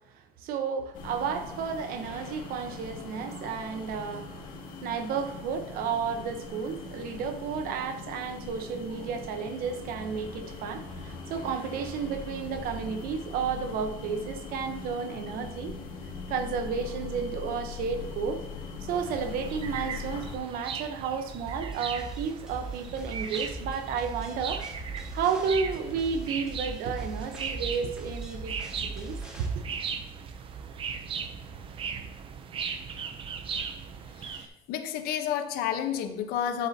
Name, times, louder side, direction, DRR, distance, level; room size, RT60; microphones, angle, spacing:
voice 1, 0.4-4.3 4.8-15.8 16.3-18.4 18.8-24.6 25.1-28.5 28.8-29.5, right 6 dB, 70° right, 8 dB, 1.0 m, -32 dB
sound 1, 0.9-20.4, left 4 dB, 65° left, 2.2 m, -41 dB
sound 2, 18.9-34.5, right 6 dB, 35° right, 0.6 m, -38 dB
sound 3, 21.5-29.5, right 2 dB, 5° right, 1.2 m, -41 dB
voice 2, 34.2-36.7, left 9 dB, 90° left, 8 dB, 1.0 m, -31 dB
10.5 x 8.1 x 2.8 m, 1.0 s
cardioid pair, 170°, 15 cm